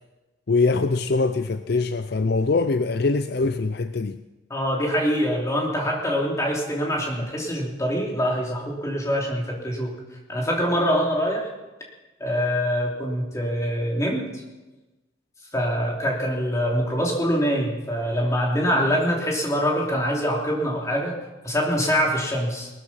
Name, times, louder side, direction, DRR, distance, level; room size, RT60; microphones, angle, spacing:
voice 1, 0.5-4.2, left 3 dB, 55° left, 0.5 m, -23 dB
voice 2, 4.5-9.9 10.3-11.5 12.2-14.4 15.5-21.2 21.4-22.7, equal, 15° left, 3.0 m, -24 dB
19.0 x 13.0 x 5.7 m
head